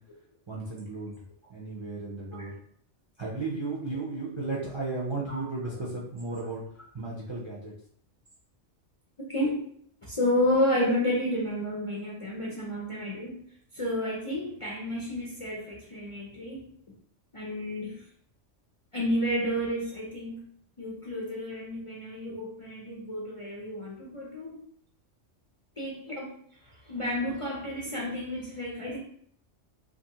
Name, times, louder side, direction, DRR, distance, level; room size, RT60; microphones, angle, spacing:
voice 1, 0.5-1.2 1.5-2.5 3.2-6.6 6.9-7.7, right 3 dB, 45° right, -5 dB, 0.3 m, -34 dB
voice 2, 5.3-5.7 9.2-9.6 10.1-13.4 13.7-16.6 17.3-18.0 18.9-20.5 20.8-24.6 25.8-26.4 26.8-29.0, left 1 dB, 40° left, -5 dB, 0.4 m, -31 dB
2.6 x 2.5 x 2.8 m, 0.64 s
omnidirectional pair, 1.3 m